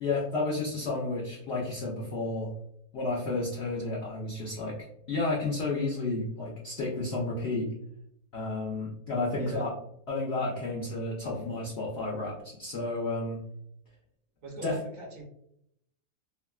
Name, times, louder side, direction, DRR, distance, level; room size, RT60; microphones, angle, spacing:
voice 1, 0.0-2.5 2.9-4.8 5.1-7.7 8.3-9.7 10.1-13.4 14.6-14.8, left 2 dB, 90° left, -4 dB, 0.5 m, -31 dB
voice 2, 9.3-9.6 14.4-15.2, right 2 dB, 65° right, -2 dB, 0.9 m, -41 dB
3.3 x 2.1 x 2.3 m, 0.75 s
omnidirectional pair, 1.9 m